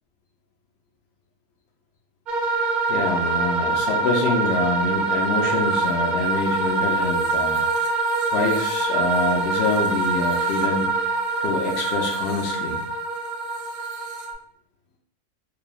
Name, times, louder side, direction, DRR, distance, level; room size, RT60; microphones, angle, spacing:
sound 1, 2.3-14.3, right 3 dB, 80° right, 0.4 m, -24 dB
voice 1, 2.9-7.6 8.3-10.9 11.4-12.8, left 3 dB, 70° left, 0 dB, 0.5 m, -25 dB
2.9 x 2.4 x 2.3 m, 0.66 s
omnidirectional pair, 1.5 m